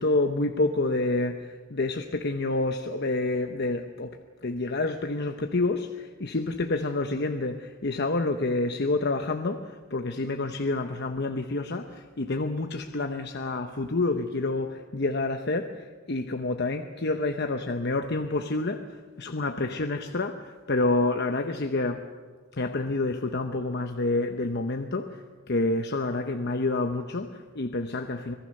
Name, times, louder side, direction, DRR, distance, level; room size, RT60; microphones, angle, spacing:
voice 1, 0.0-22.1 22.5-28.3, left 2 dB, 50° left, 6 dB, 0.9 m, -28 dB
26.0 x 18.5 x 6.6 m, 1.5 s
head